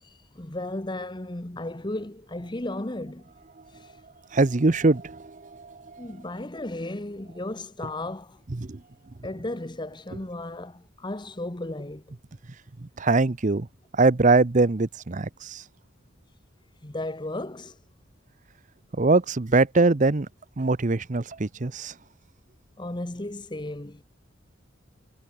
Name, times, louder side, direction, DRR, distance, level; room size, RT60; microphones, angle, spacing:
voice 1, 0.0-3.3 3.7-3.9 6.0-8.4 9.2-12.1 16.8-17.8 22.8-24.0, left 1 dB, 25° left, 1.2 m, -35 dB
voice 2, 4.3-6.1 8.5-8.8 12.8-13.7 13.9-15.6 18.9-20.3 20.6-21.9, right 3 dB, 40° right, 0.7 m, -22 dB
head